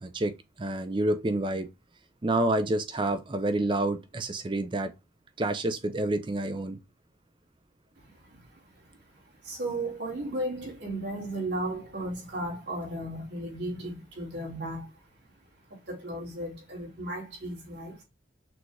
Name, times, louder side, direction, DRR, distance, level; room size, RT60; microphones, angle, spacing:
voice 1, 0.0-1.7 2.2-4.9 5.4-6.8, right 1 dB, 25° right, 0.4 m, -28 dB
voice 2, 8.0-8.6 8.9-9.0 9.4-14.9 15.7-18.0, right 1 dB, 65° right, 2.2 m, -35 dB
6.0 x 2.5 x 3.2 m
head